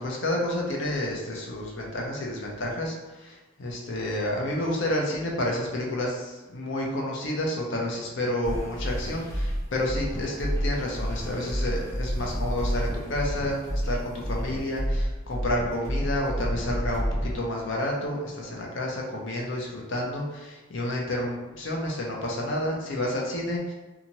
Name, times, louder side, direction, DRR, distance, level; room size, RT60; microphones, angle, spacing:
voice 1, 0.0-23.7, left 1 dB, 65° left, -2 dB, 0.6 m, -30 dB
sound 1, 8.4-17.4, equal, 15° left, 0.8 m, -29 dB
2.7 x 2.4 x 2.9 m, 1.1 s
head